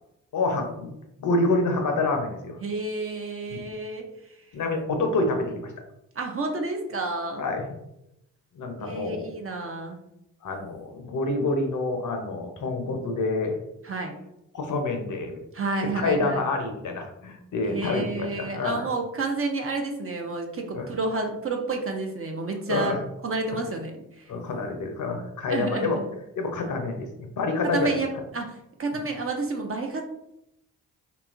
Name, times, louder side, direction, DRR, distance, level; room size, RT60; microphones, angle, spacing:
voice 1, 0.3-0.9 1.2-2.6 3.5-3.6 4.5-5.7 7.4-7.7 8.6-9.2 10.4-13.6 14.5-15.4 15.9-18.8 20.7-20.9 22.7-23.0 23.5-23.6 24.3-26.0 26.4-27.9 28.9-29.0, left 3 dB, 45° left, 4 dB, 0.6 m, -27 dB
voice 2, 2.6-4.1 6.2-7.4 8.8-10.0 13.8-14.1 15.5-16.4 17.6-22.9 23.2-24.3 25.5-26.1 27.6-30.0, right 3 dB, 35° right, 3 dB, 0.5 m, -30 dB
2.8 x 2.3 x 2.4 m, 0.84 s
hypercardioid pair, 40°, 41 cm